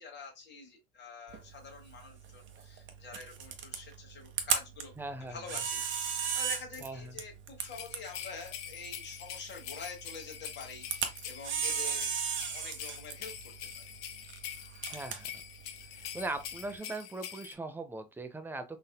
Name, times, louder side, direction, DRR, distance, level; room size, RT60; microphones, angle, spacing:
voice 1, 0.0-4.9 5.2-12.1 12.4-13.3 13.8-13.9, left 5 dB, 35° left, 1.3 m, -46 dB
Camera, 1.3-16.8, right 7 dB, 40° right, 0.8 m, -38 dB
voice 2, 5.0-5.4 6.8-7.1 14.9-15.3 15.9-18.6, right 2 dB, 5° right, 0.5 m, -39 dB
sound 1, 7.6-17.5, left 9 dB, 65° left, 0.6 m, -45 dB
3.9 x 2.6 x 2.2 m
hypercardioid pair, 75°, 29 cm